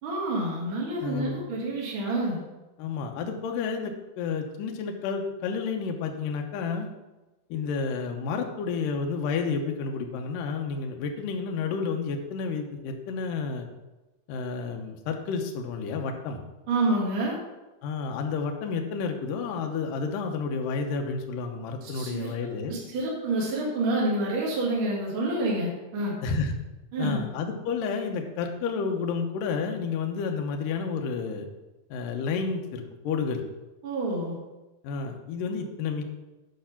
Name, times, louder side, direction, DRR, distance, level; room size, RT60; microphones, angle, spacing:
voice 1, 0.0-2.4 16.7-17.4 21.8-22.3 22.7-26.1 26.9-27.2 33.8-34.4, right 2 dB, 45° right, -4 dB, 1.8 m, -28 dB
voice 2, 1.0-1.4 2.8-6.9 7.5-13.7 14.3-16.4 17.8-22.7 26.2-26.6 27.0-31.5 31.9-33.4 34.8-36.0, left 5 dB, 75° left, 3 dB, 2.0 m, -30 dB
9.1 x 5.9 x 5.8 m, 1.1 s
omnidirectional pair, 5.0 m